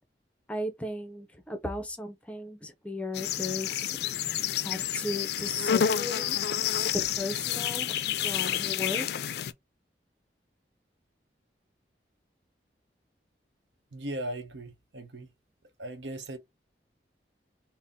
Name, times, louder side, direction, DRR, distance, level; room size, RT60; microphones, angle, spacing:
voice 1, 0.5-4.0 4.6-6.4 6.9-7.9 8.2-9.1, left 1 dB, 5° left, 0.5 m, -36 dB
sound 1, 3.1-9.5, left 9 dB, 60° left, 0.3 m, -29 dB
voice 2, 13.9-15.3 15.8-16.4, right 1 dB, 85° right, 0.8 m, -38 dB
4.1 x 2.0 x 3.5 m
head